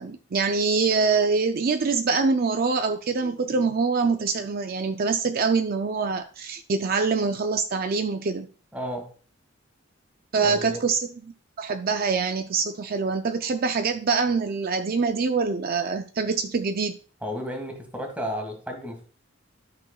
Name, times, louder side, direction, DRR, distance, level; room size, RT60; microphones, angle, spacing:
voice 1, 0.0-8.5 10.3-11.1 11.6-17.0, right 4 dB, 50° right, 7 dB, 0.5 m, -24 dB
voice 2, 8.7-9.1 10.4-10.8 17.2-19.0, equal, 5° right, 2 dB, 1.8 m, -33 dB
12.5 x 6.2 x 2.3 m, 0.40 s
head